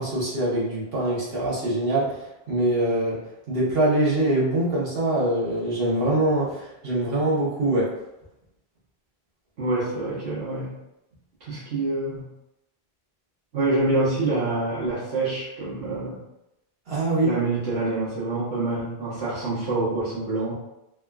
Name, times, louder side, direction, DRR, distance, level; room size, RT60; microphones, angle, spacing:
voice 1, 0.0-3.2 3.5-7.9 16.9-17.3, right 1 dB, 65° right, -6 dB, 1.2 m, -23 dB
voice 2, 9.6-10.8 11.4-12.3 13.5-16.2 17.2-20.5, right 2 dB, 85° right, -10 dB, 1.2 m, -26 dB
3.5 x 2.2 x 2.3 m, 0.90 s
omnidirectional pair, 1.1 m